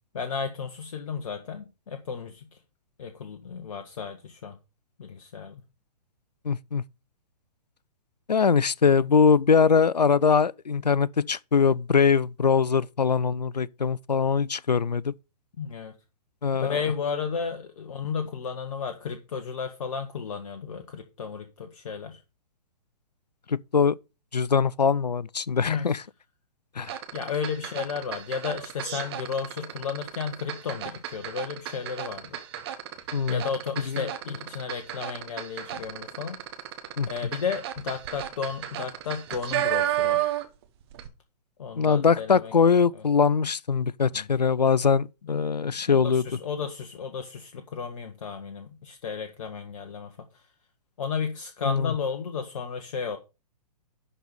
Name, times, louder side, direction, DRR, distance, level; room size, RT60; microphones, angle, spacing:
voice 1, 0.1-2.5 3.0-4.6 5.0-5.6 15.6-15.9 16.6-22.2 25.7-26.0 27.1-32.4 33.3-36.4 37.1-40.3 41.6-42.5 42.9-43.0 44.1-44.3 45.9-50.1 51.0-53.2, left 6 dB, 55° left, 1.1 m, -33 dB
voice 2, 6.4-6.8 8.3-15.1 16.4-16.8 23.5-24.0 24.3-26.0 26.8-26.9 33.1-33.4 33.9-34.1 37.0-37.1 41.8-46.2 51.6-51.9, left 5 dB, 85° left, 0.4 m, -22 dB
sound 1, 26.8-40.6 40.9-41.1, right 12 dB, 40° right, 1.2 m, -33 dB
11.5 x 4.1 x 5.2 m
figure-of-eight pair, 125°, 21 cm